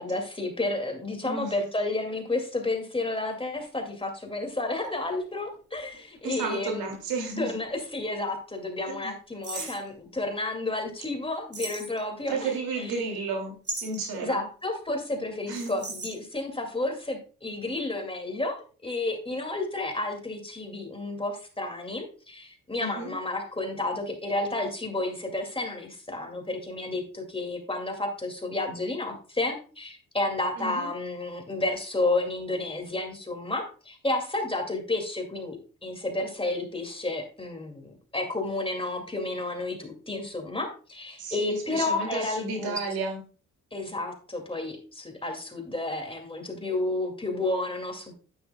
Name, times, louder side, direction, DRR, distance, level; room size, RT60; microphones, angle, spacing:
voice 1, 0.0-6.9 7.4-12.5 14.1-42.8 43.7-48.2, left 2 dB, 15° left, 4 dB, 2.3 m, -31 dB
voice 2, 1.2-1.5 6.2-7.6 9.0-9.1 9.5-9.7 12.3-14.5 15.5-15.7 22.8-23.1 30.6-30.9 41.2-43.2, right 3 dB, 85° right, 3 dB, 2.5 m, -32 dB
sound 1, 3.8-3.9 4.8-7.5 7.8-7.9 9.4-9.9 11.5-12.3 13.6-14.1 15.5-16.2, right 2 dB, 40° right, 4.2 m, -38 dB
9.2 x 9.1 x 2.3 m, 0.37 s
cardioid pair, 70°, 35 cm